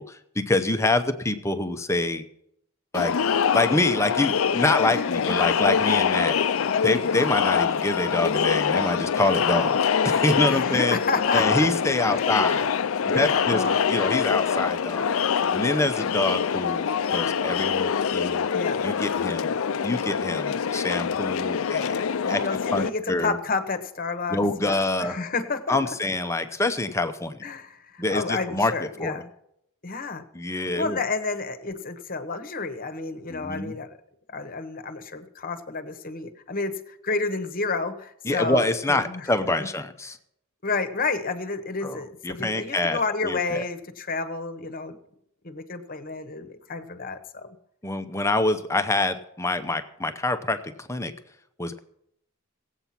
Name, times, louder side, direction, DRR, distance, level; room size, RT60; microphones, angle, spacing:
voice 1, 0.0-2.2 2.9-3.1 3.5-6.4 6.8-11.0 11.3-12.7 13.1-13.6 13.9-15.1 15.5-18.4 18.8-19.5 19.8-22.4 22.7-23.4 24.3-25.2 25.7-27.4 28.0-29.2 30.3-31.0 33.3-33.8 38.2-40.2 41.8-43.6 47.8-51.1 51.6-51.8, left 2 dB, 15° left, 8 dB, 0.7 m, -26 dB
Crowd, 2.9-22.9, left 7 dB, 70° left, 0.5 m, -24 dB
voice 2, 10.3-11.7 12.1-12.6 13.1-14.1 18.5-18.8 22.2-25.9 27.4-29.3 29.8-30.2 30.5-34.0 34.3-39.3 39.6-39.7 40.6-45.0 45.4-47.5, left 4 dB, 40° left, 10 dB, 1.1 m, -30 dB
18.0 x 8.2 x 5.9 m, 0.77 s
head